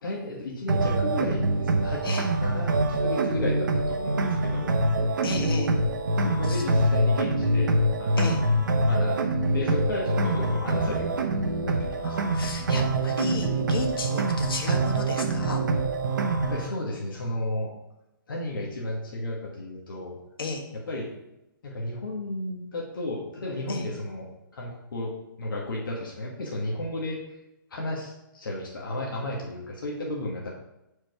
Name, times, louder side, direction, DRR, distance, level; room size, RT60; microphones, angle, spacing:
voice 1, 0.0-4.7 6.1-7.7 8.0-8.2 8.9-11.2 11.7-12.2 16.5-17.7 18.3-20.2 20.7-21.1 21.6-24.3 24.5-25.1 25.4-27.2 27.7-30.5, left 1 dB, 70° left, -3 dB, 1.7 m, -33 dB
sound 1, 0.7-16.7, right 2 dB, 60° right, 0.8 m, -25 dB
voice 2, 5.2-5.7 6.4-6.6 8.2-8.4 12.0-15.6 20.4-20.6 23.7-23.8, left 3 dB, 85° left, 2 dB, 1.6 m, -33 dB
5.0 x 4.4 x 5.8 m, 0.91 s
hypercardioid pair, 170°, 12 cm